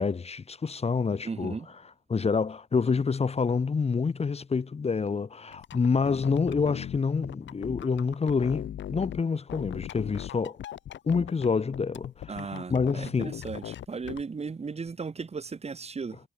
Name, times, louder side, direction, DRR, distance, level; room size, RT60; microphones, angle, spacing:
voice 1, 0.0-1.5 2.1-10.6 11.1-13.4, left 5 dB, 30° left, 1.8 m, -27 dB
voice 2, 1.2-1.7 12.3-16.2, right 5 dB, 30° right, 2.7 m, -36 dB
sound 1, 5.5-9.2 9.5-11.5 11.7-14.2, left 11 dB, 70° left, 2.8 m, -40 dB
cardioid pair, 90°, 20 cm